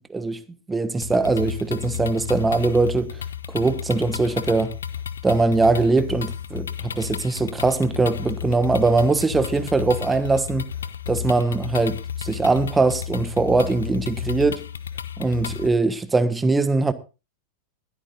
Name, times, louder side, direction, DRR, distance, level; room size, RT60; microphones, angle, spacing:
voice 1, 0.1-0.4 0.7-3.2 3.5-4.7 5.2-10.7 11.1-14.7 15.2-16.9, right 3 dB, 10° right, 1.3 m, -21 dB
sound 1, 1.0-15.7, left 9 dB, 70° left, 0.9 m, -32 dB
21.0 x 13.0 x 2.6 m
figure-of-eight pair, 90°, 0 cm